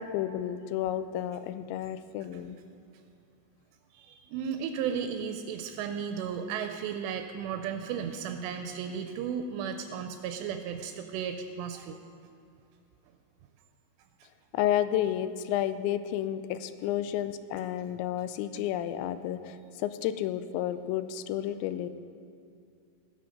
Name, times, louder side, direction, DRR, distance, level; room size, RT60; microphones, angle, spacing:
voice 1, 0.0-2.6 14.5-21.9, left 11 dB, 90° left, 12 dB, 2.9 m, -31 dB
voice 2, 3.9-12.0, right 7 dB, 80° right, 6 dB, 2.7 m, -34 dB
19.0 x 6.9 x 5.1 m, 2.5 s
omnidirectional pair, 5.1 m